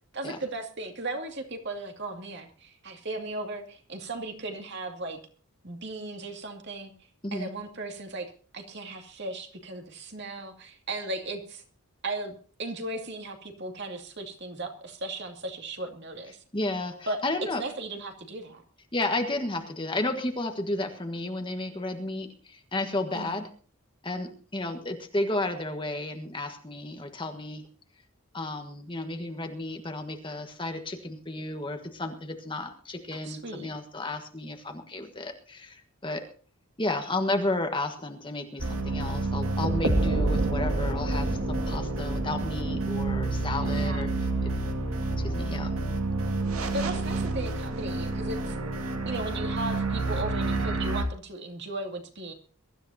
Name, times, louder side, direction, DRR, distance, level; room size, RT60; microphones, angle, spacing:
voice 1, 0.1-5.2 5.6-6.9 7.3-11.6 12.0-16.4 17.1-17.2 17.6-18.6 23.1-23.4 33.2-33.7 43.7-44.2 46.7-48.6 49.0-52.3, right 2 dB, 50° right, 4 dB, 2.4 m, -36 dB
voice 2, 16.5-17.6 18.9-23.5 24.0-27.7 28.3-36.3 36.8-44.1 44.4-44.5 45.2-45.7, left 2 dB, 20° left, 5 dB, 1.5 m, -32 dB
sound 1, 38.6-51.0, right 2 dB, 75° right, 2.2 m, -28 dB
22.5 x 13.5 x 2.8 m, 0.39 s
head